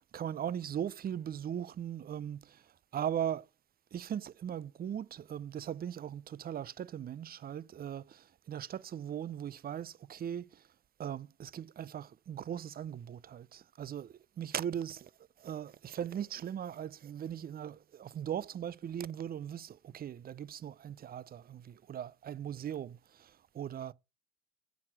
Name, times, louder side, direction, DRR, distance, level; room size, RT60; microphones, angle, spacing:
voice 1, 0.1-2.6 2.9-3.5 3.9-10.6 11.0-15.1 15.4-23.9, right 9 dB, 30° right, 0.5 m, -39 dB
7.5 x 6.2 x 5.8 m
hypercardioid pair, 65°, 34 cm